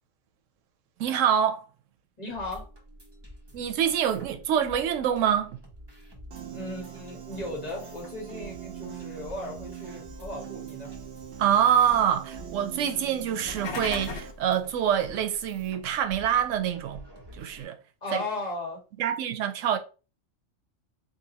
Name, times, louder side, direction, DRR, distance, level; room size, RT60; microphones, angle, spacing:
voice 1, 1.0-1.7 3.5-5.6 11.4-17.0 17.4-17.8 18.1-18.2 19.0-19.8, right 9 dB, 90° right, 0.9 m, -25 dB
voice 2, 2.2-2.7 6.5-10.9 18.0-18.8, left 2 dB, 35° left, 1.4 m, -36 dB
sound 1, 2.3-17.6, equal, 20° right, 0.9 m, -49 dB
Piano, 6.3-14.3, right 10 dB, 65° right, 0.8 m, -42 dB
sound 2, 13.3-14.4, left 4 dB, 65° left, 0.9 m, -36 dB
2.9 x 2.6 x 4.0 m
omnidirectional pair, 1.3 m